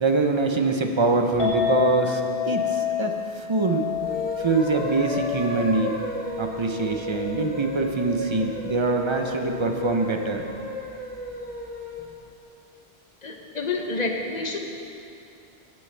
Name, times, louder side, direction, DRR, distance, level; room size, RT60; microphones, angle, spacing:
voice 1, 0.0-3.9 4.4-6.0 6.4-10.5, right 3 dB, 35° right, 4 dB, 0.5 m, -24 dB
Chink clink, 1.4-7.7, left 9 dB, 60° left, 2.4 m, -30 dB
sound 1, 4.0-12.1, left 1 dB, 10° left, 0.8 m, -33 dB
voice 2, 13.2-14.6, left 3 dB, 45° left, 2 dB, 0.9 m, -28 dB
17.0 x 6.4 x 3.3 m, 2.6 s
omnidirectional pair, 1.1 m